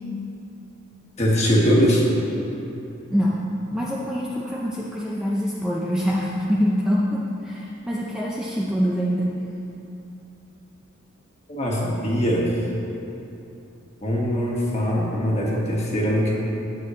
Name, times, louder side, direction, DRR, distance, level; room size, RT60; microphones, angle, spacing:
voice 1, 1.2-2.0 11.5-12.7 14.0-16.3, equal, 30° left, -4 dB, 1.5 m, -21 dB
voice 2, 3.1-3.4 3.7-9.4, equal, 5° right, -6 dB, 0.5 m, -24 dB
11.0 x 8.3 x 3.1 m, 3.0 s
head